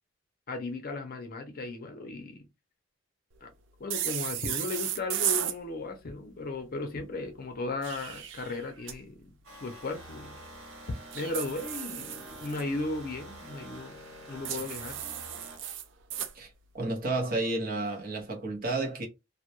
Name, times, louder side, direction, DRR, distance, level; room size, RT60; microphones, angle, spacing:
voice 1, 0.5-2.5 3.4-3.5 3.8-9.3 9.6-10.4 11.1-14.0 14.3-15.0, left 3 dB, 45° left, 0.5 m, -36 dB
sound 1, 3.9-5.6 7.6-9.0 11.1-12.6 14.4-16.3, right 10 dB, 65° right, 0.4 m, -34 dB
sound 2, 9.4-15.6, right 1 dB, 90° right, 1.0 m, -47 dB
voice 2, 16.7-19.1, right 2 dB, 45° right, 0.7 m, -31 dB
2.2 x 2.1 x 2.7 m
head